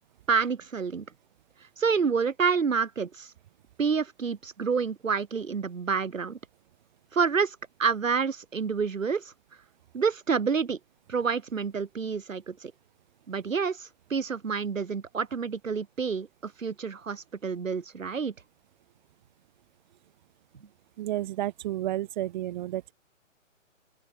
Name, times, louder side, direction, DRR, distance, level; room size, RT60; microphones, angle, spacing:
voice 1, 0.3-1.0 1.8-3.3 3.8-6.4 7.1-9.3 9.9-10.8 11.1-12.7 13.3-18.3, right 5 dB, 75° right, 2.8 m, -28 dB
voice 2, 21.0-22.9, right 14 dB, 35° right, 2.9 m, -31 dB
open air
figure-of-eight pair, 145°, 40 cm